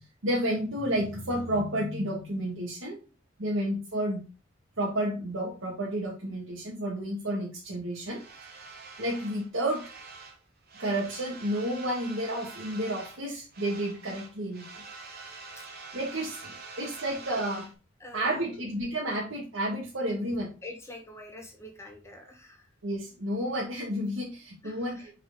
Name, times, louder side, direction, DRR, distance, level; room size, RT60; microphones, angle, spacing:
voice 1, 0.2-3.0 3.4-4.2 4.8-8.2 9.0-9.8 10.8-14.6 15.9-17.7 18.1-20.5 22.8-25.1, right 1 dB, 90° right, -4 dB, 1.9 m, -31 dB
sound 1, 8.1-10.4 10.7-13.2 13.5-17.7, right 4 dB, 50° right, 1.4 m, -46 dB
voice 2, 18.0-18.5 20.6-22.6 24.6-25.1, left 1 dB, 15° left, 2 dB, 1.6 m, -45 dB
6.2 x 4.4 x 3.9 m, 0.32 s
head